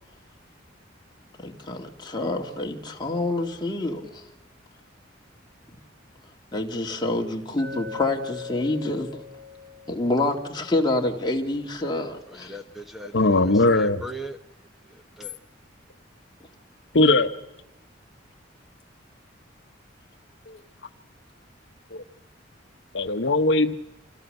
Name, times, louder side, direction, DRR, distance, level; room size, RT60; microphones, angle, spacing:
voice 1, 1.4-4.2 6.5-9.2 9.9-12.6, left 2 dB, 25° left, 2 dB, 2.1 m, -27 dB
Glass, 7.6-11.7, left 5 dB, 55° right, 1.7 m, -41 dB
voice 2, 12.3-13.5 13.7-14.4 14.9-15.4, right 1 dB, ahead, 6 dB, 1.0 m, -39 dB
voice 3, 13.1-14.0 16.9-17.3 20.5-20.6 21.9-22.0 22.9-23.7, left 2 dB, 70° left, 8 dB, 1.0 m, -20 dB
27.0 x 17.0 x 6.6 m, 0.96 s
head